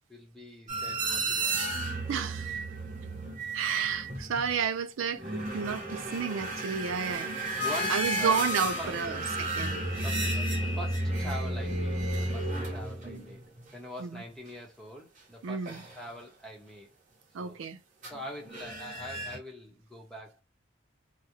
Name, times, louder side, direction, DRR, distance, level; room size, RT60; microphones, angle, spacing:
voice 1, 0.1-1.8 5.2-6.0 7.6-8.4 8.8-9.2 10.0-13.4 13.7-15.7 15.9-16.9 17.4-17.6 18.1-20.4, equal, 5° left, 0.7 m, -44 dB
sound 1, 0.7-4.6 5.0-13.7 15.7-16.0 18.0-18.2 18.4-19.4, right 1 dB, 40° right, 0.9 m, -32 dB
voice 2, 2.1-2.5 3.5-7.4 7.9-9.8 14.0-14.2 15.4-15.8 17.3-17.8, right 6 dB, 90° right, 0.4 m, -31 dB
2.4 x 2.0 x 2.8 m
head